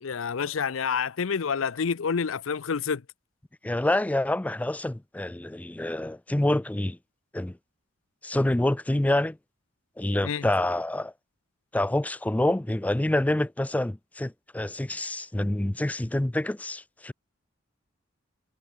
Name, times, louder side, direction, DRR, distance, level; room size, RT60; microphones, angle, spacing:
voice 1, 0.0-3.0 10.2-10.5, left 6 dB, 80° left, 0.6 m, -28 dB
voice 2, 3.6-7.0 7.3-7.6 8.2-9.4 10.0-11.1 11.7-17.1, left 1 dB, 5° left, 0.4 m, -27 dB
head